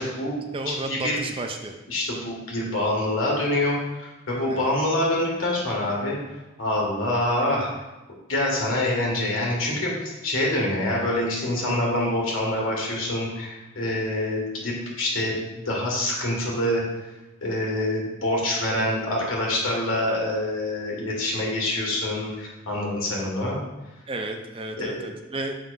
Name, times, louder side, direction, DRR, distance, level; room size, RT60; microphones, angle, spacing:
voice 1, 0.0-1.2 1.9-6.2 6.6-7.7 8.3-16.8 17.4-23.6 24.8-25.1, left 1 dB, 90° left, -3 dB, 1.8 m, -26 dB
voice 2, 0.5-1.7 4.5-4.7 24.1-25.5, right 2 dB, 25° right, 4 dB, 0.5 m, -32 dB
7.3 x 5.6 x 2.6 m, 1.0 s
head